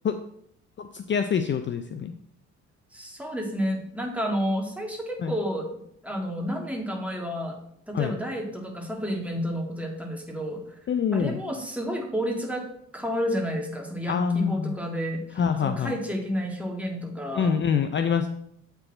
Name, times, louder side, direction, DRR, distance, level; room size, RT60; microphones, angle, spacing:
voice 1, 0.8-2.1 5.2-5.4 7.9-8.2 10.9-11.4 14.1-14.8 15.4-15.9 17.3-18.3, left 7 dB, 40° left, 8 dB, 0.5 m, -25 dB
voice 2, 2.9-5.7 6.0-7.6 7.9-10.6 11.1-12.6 12.9-17.6, equal, 5° right, 1 dB, 1.8 m, -30 dB
7.7 x 4.5 x 4.3 m, 0.71 s
cardioid pair, 90°, 30 cm